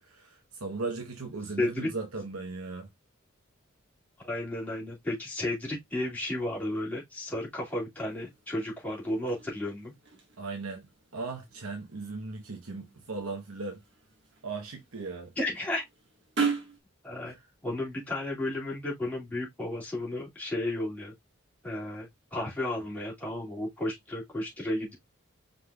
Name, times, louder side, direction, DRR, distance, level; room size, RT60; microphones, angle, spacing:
voice 1, 0.1-2.9 10.4-10.9 11.1-13.8 14.4-15.3 17.2-17.4, right 3 dB, 90° right, 0.9 m, -37 dB
voice 2, 1.6-1.9 4.2-9.9 15.4-15.8 17.0-17.3 17.6-21.1 21.6-24.9, left 1 dB, 10° left, 2.1 m, -33 dB
sound 1, 8.1-16.8, right 5 dB, 55° right, 1.4 m, -39 dB
5.2 x 3.8 x 2.3 m
head